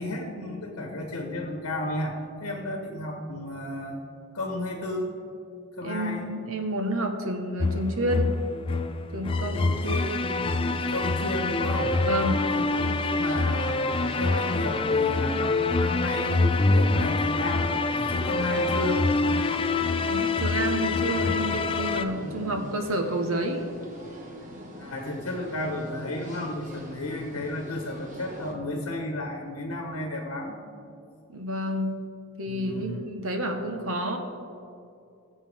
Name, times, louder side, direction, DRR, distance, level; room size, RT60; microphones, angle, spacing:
voice 1, 0.0-2.1 2.4-4.0 4.3-5.1 5.8-6.4 9.6-11.9 12.5-13.8 14.2-19.0 22.2-22.5 24.8-30.5 32.4-33.0, left 1 dB, 75° left, 1 dB, 1.4 m, -33 dB
voice 2, 5.8-8.3 9.1-10.1 12.0-12.4 20.0-23.7 31.3-32.0 32.4-34.2, right 1 dB, 70° right, 4 dB, 1.3 m, -29 dB
sound 1, 7.6-22.0, left 3 dB, 25° left, 0.3 m, -26 dB
sound 2, 9.4-28.5, right 1 dB, 35° right, 1.7 m, -44 dB
20.5 x 7.2 x 3.6 m, 2.5 s
head